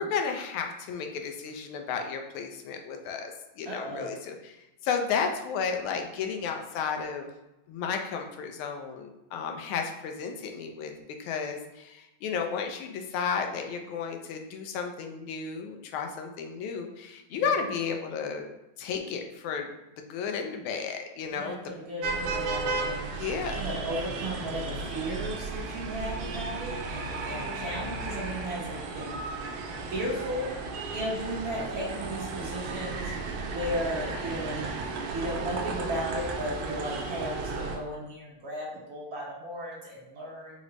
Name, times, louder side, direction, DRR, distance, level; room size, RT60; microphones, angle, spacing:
voice 1, 0.0-7.3 7.7-10.9 11.2-18.5 18.8-21.6 23.1-23.6 26.2-26.5 27.3-27.9, left 6 dB, 90° left, 4 dB, 1.4 m, -33 dB
voice 2, 3.6-4.1 17.3-17.4 21.3-23.1 23.5-29.2 29.9-30.5 30.9-34.7 35.1-40.6, equal, 55° right, -5 dB, 1.4 m, -35 dB
sound 1, 22.0-37.8, right 3 dB, 85° right, 1.4 m, -34 dB
4.7 x 2.1 x 3.8 m, 0.94 s
omnidirectional pair, 2.2 m